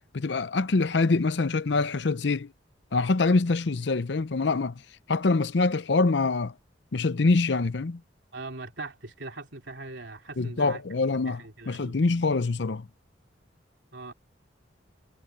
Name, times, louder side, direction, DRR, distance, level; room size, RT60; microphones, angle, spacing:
voice 1, 0.0-2.5 2.9-4.8 5.1-6.5 6.9-8.0 10.4-12.9, left 3 dB, 65° left, 0.7 m, -25 dB
voice 2, 8.3-10.8 11.2-12.0 13.9-14.1, right 3 dB, 75° right, 3.0 m, -40 dB
head